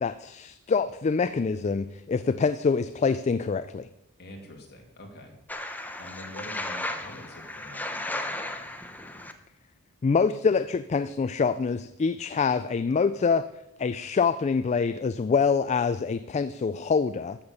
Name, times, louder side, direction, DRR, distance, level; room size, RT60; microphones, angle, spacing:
voice 1, 0.0-3.9 10.0-13.5 13.8-17.4, left 5 dB, 30° left, 13 dB, 0.3 m, -25 dB
voice 2, 4.2-5.3 6.0-8.8, left 1 dB, 50° left, 1 dB, 2.5 m, -45 dB
sound 1, 5.5-9.3, left 1 dB, 5° left, 0.8 m, -35 dB
13.0 x 7.2 x 6.6 m, 0.88 s
head